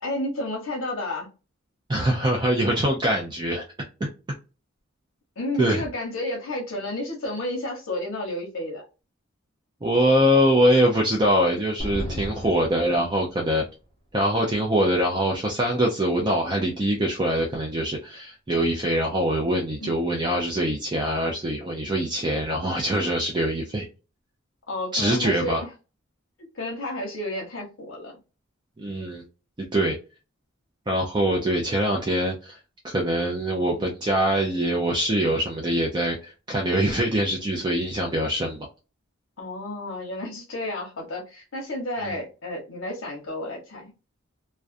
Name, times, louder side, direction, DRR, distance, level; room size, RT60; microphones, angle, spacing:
voice 1, 0.0-1.3 5.4-8.8 12.9-13.0 19.8-19.9 24.7-25.7 26.5-28.1 39.4-43.9, left 1 dB, 65° left, 0.9 m, -31 dB
voice 2, 1.9-3.6 4.0-4.1 5.6-5.8 9.8-13.6 14.1-23.9 24.9-25.6 28.8-29.2 29.6-30.0 30.9-32.6 32.8-38.7 42.1-42.2, equal, 20° right, 0.4 m, -23 dB
sound 1, 11.8-13.7, equal, 30° left, 0.8 m, -34 dB
2.4 x 2.2 x 2.5 m
head